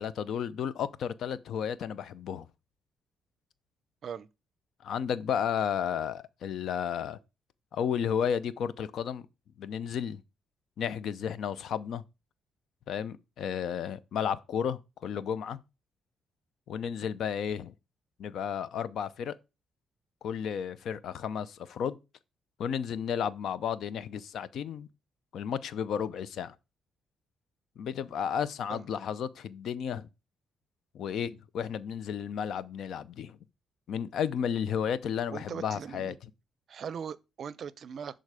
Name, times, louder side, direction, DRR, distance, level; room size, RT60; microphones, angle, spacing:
voice 1, 0.0-2.5 4.8-7.2 7.7-9.3 9.6-10.2 10.8-12.0 12.9-15.6 16.7-17.7 18.2-19.3 20.2-22.0 22.6-24.9 25.3-26.5 27.8-30.1 30.9-33.4 33.9-36.1, left 8 dB, 70° left, 0.6 m, -33 dB
voice 2, 35.3-36.2 36.7-38.2, right 7 dB, 55° right, 0.5 m, -40 dB
10.5 x 4.0 x 4.9 m
cardioid pair, 90°, 0 cm